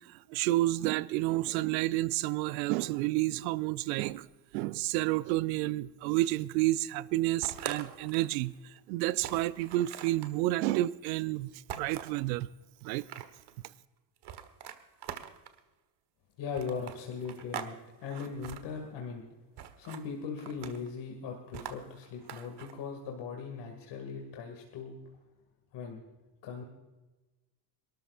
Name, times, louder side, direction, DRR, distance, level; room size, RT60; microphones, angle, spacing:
voice 1, 0.0-4.3 4.5-11.5 11.8-12.5 12.8-13.1, right 17 dB, 90° right, 0.7 m, -30 dB
sound 1, 7.4-8.4 8.8-8.9 9.2-10.3 11.7-12.2 12.8-13.5 14.2-15.6 16.5-17.7 18.0-18.6 19.6-20.0 20.4-20.9 21.5-22.7, right 10 dB, 50° right, 1.5 m, -43 dB
voice 2, 16.4-19.3 19.8-25.0 25.7-26.0 26.4-26.6, left 5 dB, 55° left, 2.4 m, -39 dB
27.0 x 13.0 x 2.5 m
supercardioid pair, 100°, 50 cm